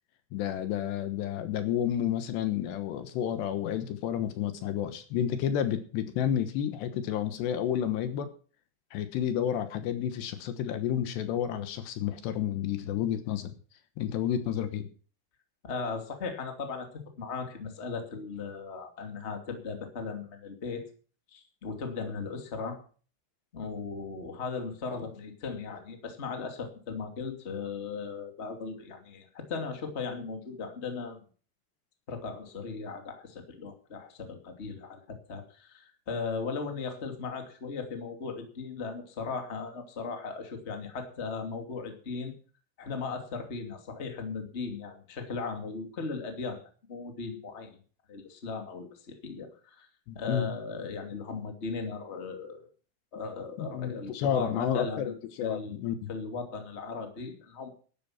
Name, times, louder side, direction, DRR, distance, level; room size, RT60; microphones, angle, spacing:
voice 1, 0.3-8.3 8.9-13.5 14.0-14.9 50.1-50.5 53.6-56.1, left 10 dB, 75° left, 10 dB, 3.3 m, -30 dB
voice 2, 15.6-16.9 17.1-20.8 21.3-22.8 23.5-31.2 32.1-42.3 42.8-47.8 48.1-49.9 50.1-52.7 53.1-55.1 55.4-55.8 56.1-57.7, left 4 dB, 20° left, 5 dB, 1.9 m, -37 dB
13.0 x 11.0 x 5.8 m, 0.40 s
omnidirectional pair, 5.1 m